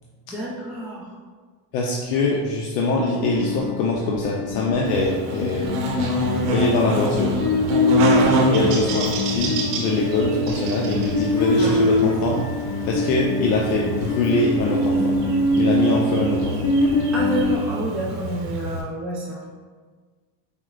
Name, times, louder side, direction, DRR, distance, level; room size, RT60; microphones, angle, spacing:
voice 1, 0.3-1.1 17.1-19.4, right 1 dB, 5° right, -6 dB, 0.4 m, -28 dB
voice 2, 1.7-5.7 6.5-7.4 8.5-12.4 12.9-15.2 15.5-16.7, left 2 dB, 85° left, -2 dB, 0.6 m, -23 dB
sound 1, 3.2-17.6, left 2 dB, 45° left, 0.7 m, -23 dB
Buzz, 4.8-18.8, right 1 dB, 80° right, 0.8 m, -27 dB
4.3 x 2.1 x 2.4 m, 1.5 s
supercardioid pair, 90°, 47 cm